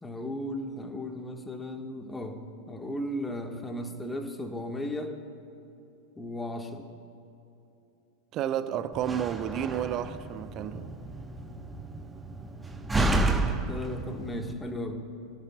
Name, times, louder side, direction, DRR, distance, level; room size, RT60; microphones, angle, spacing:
voice 1, 0.0-2.4 2.7-5.1 6.2-6.8 13.7-15.0, left 1 dB, 10° left, 4 dB, 1.5 m, -35 dB
voice 2, 8.3-10.9, right 10 dB, 35° right, 12 dB, 0.8 m, -31 dB
Slam, 8.9-14.5, right 2 dB, 10° right, 1.1 m, -31 dB
26.0 x 17.5 x 2.3 m, 2.9 s
figure-of-eight pair, 90°, 0 cm